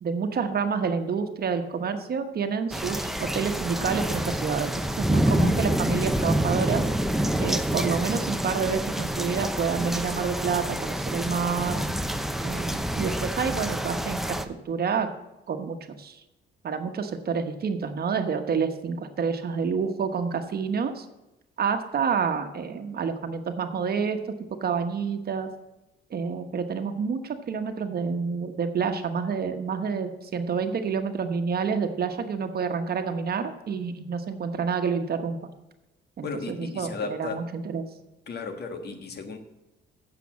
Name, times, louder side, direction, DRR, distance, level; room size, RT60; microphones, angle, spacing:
voice 1, 0.0-6.8 7.4-11.8 12.4-15.1 15.5-16.2 16.6-21.0 21.6-24.2 24.6-25.5 26.1-35.4 36.2-36.9 37.2-37.8, right 6 dB, 50° right, 7 dB, 1.2 m, -28 dB
sound 1, 2.7-14.5, right 1 dB, ahead, 0.7 m, -27 dB
voice 2, 36.2-37.4 38.3-39.4, left 4 dB, 55° left, 6 dB, 1.5 m, -35 dB
8.4 x 6.9 x 7.1 m, 0.99 s
cardioid pair, 90°, 20 cm